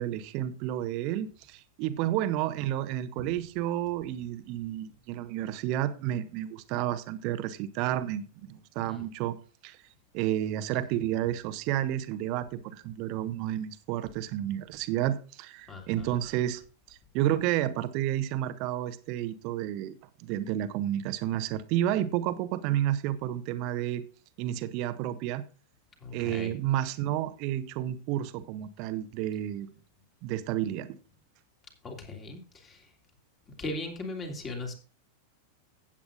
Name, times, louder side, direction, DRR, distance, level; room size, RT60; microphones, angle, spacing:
voice 1, 0.0-8.2 8.5-9.4 9.6-9.8 10.1-16.6 17.1-24.0 24.4-25.4 26.1-29.7 30.2-30.9, right 12 dB, 45° right, 1.0 m, -31 dB
voice 2, 15.7-16.1 26.0-26.6 31.8-32.8 33.6-34.7, left 2 dB, 25° left, 3.0 m, -38 dB
16.0 x 8.6 x 2.5 m
figure-of-eight pair, 90°, 0 cm